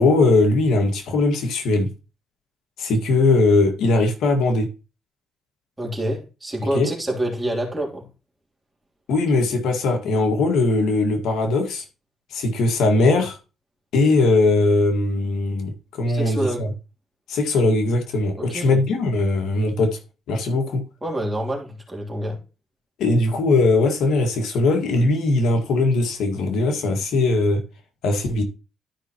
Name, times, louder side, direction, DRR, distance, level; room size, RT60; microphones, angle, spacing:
voice 1, 0.0-1.9 2.8-4.7 6.7-6.9 9.1-11.8 12.3-13.4 13.9-16.7 17.3-20.0 20.3-20.8 23.0-27.6 28.0-28.4, left 2 dB, 80° left, 1.8 m, -20 dB
voice 2, 5.8-8.1 16.1-16.7 18.4-18.8 21.0-22.4, right 1 dB, 15° right, 3.0 m, -27 dB
12.5 x 5.5 x 3.0 m
cardioid pair, 90°, 0 cm